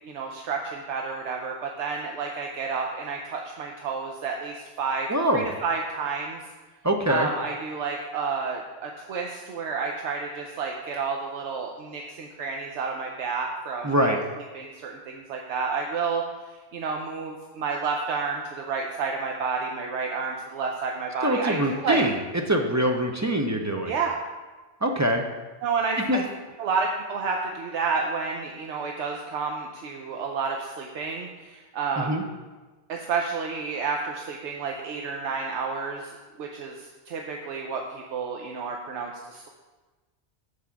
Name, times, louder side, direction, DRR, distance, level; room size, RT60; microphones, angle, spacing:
voice 1, 0.0-6.4 7.1-16.2 16.7-22.0 23.8-24.2 25.6-26.2 26.6-32.1 32.9-39.5, right 5 dB, 80° right, 1 dB, 1.0 m, -30 dB
voice 2, 5.1-5.4 6.8-7.3 13.8-14.2 21.2-22.2 22.5-23.9 24.8-25.2 26.1-26.2 32.0-32.2, equal, 25° right, 2 dB, 0.4 m, -23 dB
7.0 x 4.8 x 5.7 m, 1.3 s
omnidirectional pair, 1.1 m